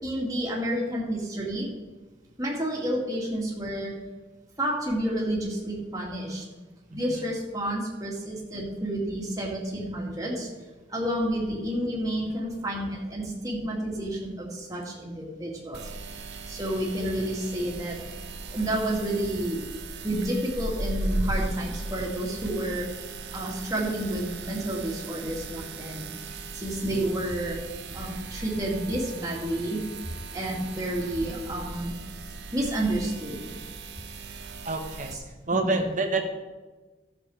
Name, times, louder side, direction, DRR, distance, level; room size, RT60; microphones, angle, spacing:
voice 1, 0.0-1.7 2.4-3.9 4.6-6.4 6.9-10.5 10.9-15.8 16.5-18.0 18.5-19.6 20.0-22.9 23.3-27.6 27.9-29.8 30.3-31.9 32.5-33.6 35.5-35.9, right 1 dB, 20° right, -3 dB, 2.2 m, -30 dB
voice 2, 6.9-7.2 30.5-30.8 34.6-35.2 35.5-36.2, right 3 dB, 45° right, 4 dB, 1.3 m, -29 dB
sound 1, 15.7-35.1, right 2 dB, 65° right, 0.9 m, -37 dB
13.0 x 7.1 x 4.9 m, 1.3 s
head